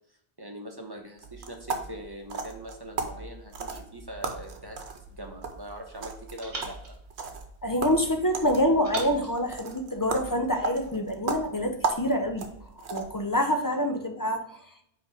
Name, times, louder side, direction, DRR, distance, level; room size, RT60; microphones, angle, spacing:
voice 1, 0.4-7.0, right 1 dB, 25° right, 3 dB, 0.9 m, -42 dB
sound 1, 1.2-13.3, right 4 dB, 90° right, 1.2 m, -36 dB
sound 2, 4.6-5.8 6.4-8.0 8.8-10.4, right 2 dB, 65° right, 1.9 m, -44 dB
voice 2, 7.6-12.5 12.9-14.5, equal, 25° left, 5 dB, 0.6 m, -26 dB
5.4 x 4.6 x 4.8 m, 0.74 s
omnidirectional pair, 1.1 m